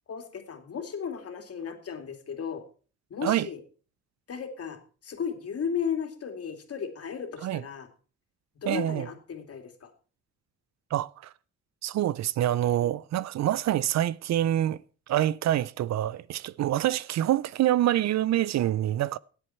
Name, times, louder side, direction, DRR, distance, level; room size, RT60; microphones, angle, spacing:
voice 1, 0.1-2.6 3.1-3.6 4.3-7.9 8.6-9.9 12.8-13.0, left 7 dB, 50° left, 2.7 m, -35 dB
voice 2, 8.7-9.1 10.9-11.1 11.8-14.8 15.1-19.2, right 12 dB, 65° right, 0.5 m, -26 dB
17.5 x 8.0 x 4.4 m
cardioid pair, 90°, 30 cm